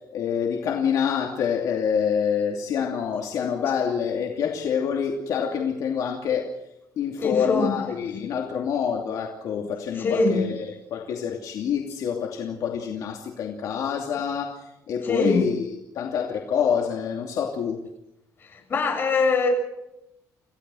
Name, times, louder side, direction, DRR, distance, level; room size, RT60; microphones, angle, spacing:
voice 1, 0.1-6.5 7.0-17.8, left 7 dB, 65° left, 1 dB, 2.7 m, -26 dB
voice 2, 7.2-7.8 9.6-9.7 9.9-10.4 15.0-15.4 18.7-19.5, left 4 dB, 35° left, 3 dB, 7.1 m, -23 dB
28.5 x 16.5 x 6.4 m, 0.88 s
cardioid pair, 165°, 7 cm